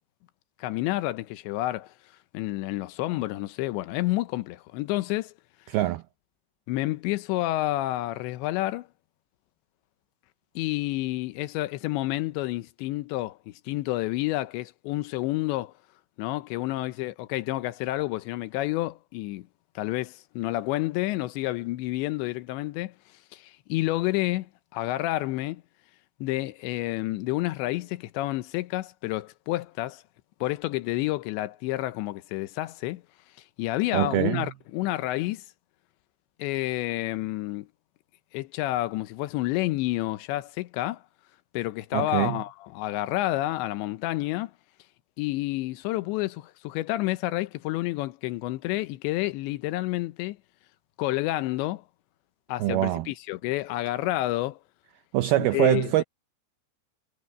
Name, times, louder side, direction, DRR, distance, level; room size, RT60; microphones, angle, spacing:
voice 1, 0.6-1.9 2.3-5.3 6.7-8.9 10.6-15.7 16.2-19.5 19.8-22.9 23.3-25.6 26.2-30.0 30.4-33.0 33.6-35.4 36.4-37.7 38.3-41.0 41.5-44.5 45.2-50.4 51.0-51.8 52.5-54.6 55.4-56.0, left 17 dB, 80° left, 3.0 m, -29 dB
voice 2, 5.7-6.0 33.9-34.5 41.9-42.4 52.6-53.1 55.1-56.0, right 16 dB, 90° right, 2.1 m, -24 dB
omnidirectional pair, 5.2 m